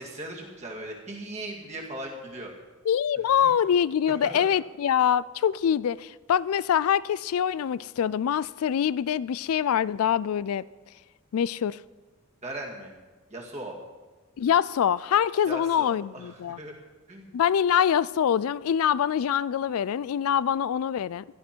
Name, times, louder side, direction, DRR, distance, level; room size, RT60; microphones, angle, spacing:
voice 1, 0.0-2.5 3.2-3.5 4.2-4.4 12.4-12.9 13.3-13.8 15.4-16.7 17.1-17.3 19.7-19.8, right 1 dB, 30° right, 2.2 m, -38 dB
voice 2, 2.9-10.6 11.3-11.8 14.4-16.6 17.3-21.2, left 8 dB, 80° left, 0.3 m, -24 dB
16.0 x 12.0 x 4.5 m
head